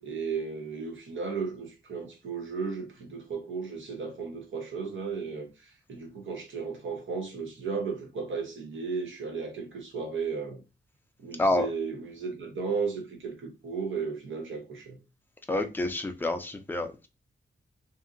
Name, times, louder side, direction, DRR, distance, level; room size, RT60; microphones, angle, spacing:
voice 1, 0.0-10.6 11.2-15.0, right 5 dB, 75° right, 0.8 m, -35 dB
voice 2, 15.5-17.1, left 1 dB, 10° left, 0.4 m, -28 dB
2.7 x 2.5 x 2.5 m
wide cardioid pair, 140°, 20 cm